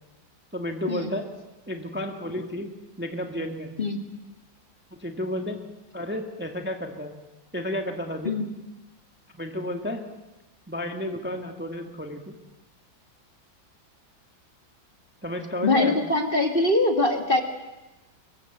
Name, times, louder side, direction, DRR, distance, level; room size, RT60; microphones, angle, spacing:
voice 1, 0.5-1.3 1.7-2.7 3.0-3.8 5.0-5.6 5.9-7.1 7.5-8.5 9.4-10.0 10.7-12.3 15.2-16.0, left 1 dB, 5° right, 4 dB, 1.6 m, -31 dB
voice 2, 15.6-17.4, left 2 dB, 30° left, 5 dB, 2.1 m, -23 dB
25.5 x 23.0 x 7.9 m, 1.0 s
omnidirectional pair, 2.1 m